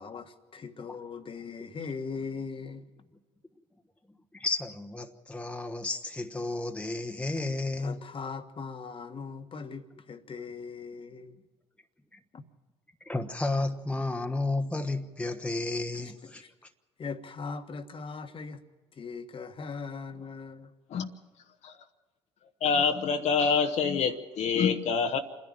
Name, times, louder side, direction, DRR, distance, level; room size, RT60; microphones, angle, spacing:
voice 1, 0.0-2.9 7.8-11.4 12.3-12.4 16.0-16.5 17.0-18.6 19.0-20.7, left 5 dB, 40° left, 1.5 m, -40 dB
voice 2, 4.3-8.0 12.1-12.2 13.1-16.4, left 2 dB, 10° left, 1.3 m, -32 dB
voice 3, 22.6-25.2, left 5 dB, 60° left, 1.2 m, -26 dB
27.0 x 10.5 x 8.9 m
hypercardioid pair, 60°, 14 cm